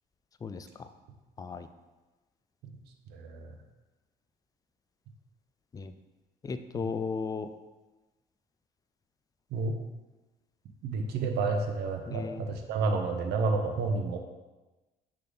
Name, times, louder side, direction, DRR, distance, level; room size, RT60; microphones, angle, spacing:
voice 1, 3.1-3.5 9.5-9.7 10.8-14.2, right 3 dB, 75° right, 4 dB, 0.9 m, -30 dB
voice 2, 6.4-7.5 12.1-12.4, left 5 dB, 20° left, 10 dB, 0.4 m, -35 dB
6.5 x 3.7 x 3.9 m, 1.2 s
cardioid pair, 110°, 17 cm